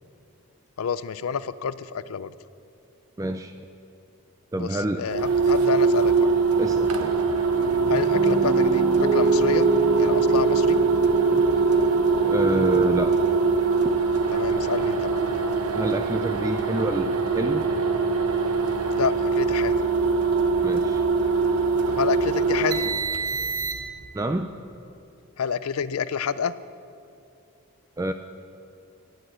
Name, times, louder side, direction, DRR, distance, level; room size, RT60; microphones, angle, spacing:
voice 1, 0.8-2.3 4.6-6.3 7.9-9.7 10.0-10.8 14.3-15.2 19.0-19.8 21.9-22.9 25.4-26.5, left 6 dB, 75° left, 16 dB, 0.4 m, -28 dB
voice 2, 3.2-3.6 4.5-5.0 6.6-7.1 11.3-11.4 12.2-13.2 15.7-17.7 20.6-21.0 24.1-24.5 28.0-28.1, right 2 dB, 15° right, 7 dB, 0.3 m, -28 dB
sound 1, 5.1-24.1, right 4 dB, 85° right, 1.0 m, -22 dB
Piano, 7.6-15.7, right 1 dB, 50° right, 0.9 m, -31 dB
17.5 x 6.2 x 7.8 m, 2.6 s
head